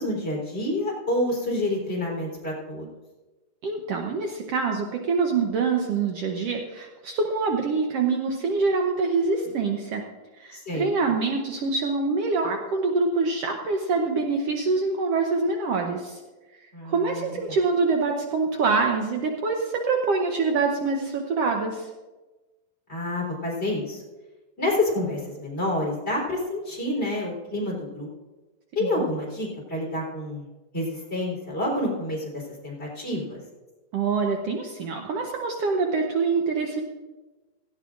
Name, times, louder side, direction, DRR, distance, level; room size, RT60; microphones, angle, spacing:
voice 1, 0.0-2.9 10.5-10.9 16.7-17.6 22.9-24.0 24.6-28.1 28.8-30.4 30.7-33.4, left 1 dB, 15° left, -5 dB, 3.9 m, -28 dB
voice 2, 3.6-10.0 10.4-16.2 16.8-21.9 28.8-29.1 33.9-36.8, right 4 dB, 85° right, 2 dB, 1.3 m, -25 dB
17.0 x 15.5 x 2.5 m, 1.2 s
omnidirectional pair, 4.1 m